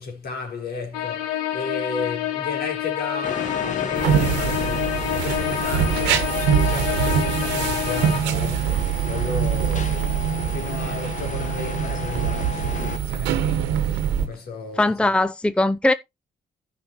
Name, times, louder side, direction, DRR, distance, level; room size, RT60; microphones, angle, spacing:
voice 1, 0.0-10.2 10.5-14.0 14.3-15.1, left 4 dB, 60° left, 4.4 m, -34 dB
sound 1, 0.9-8.2, left 12 dB, 85° left, 1.2 m, -27 dB
sound 2, 3.2-13.0, left 5 dB, 45° left, 1.5 m, -33 dB
sound 3, 4.0-14.3, right 9 dB, 75° right, 1.2 m, -24 dB
voice 2, 14.8-15.9, left 2 dB, 5° left, 0.6 m, -20 dB
15.0 x 5.8 x 3.0 m
hypercardioid pair, 45°, 18 cm